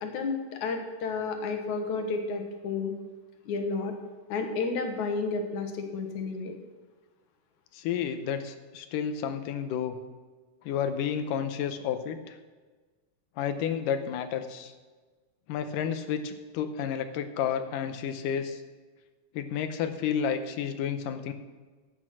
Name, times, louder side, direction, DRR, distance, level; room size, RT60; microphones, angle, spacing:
voice 1, 0.0-2.9 3.5-3.9 4.3-6.5, left 4 dB, 65° left, 5 dB, 2.5 m, -31 dB
voice 2, 7.7-10.0 10.7-12.4 13.4-14.7 15.5-18.6 19.3-21.3, left 8 dB, 85° left, 9 dB, 2.4 m, -31 dB
12.5 x 8.8 x 6.1 m, 1.4 s
omnidirectional pair, 3.8 m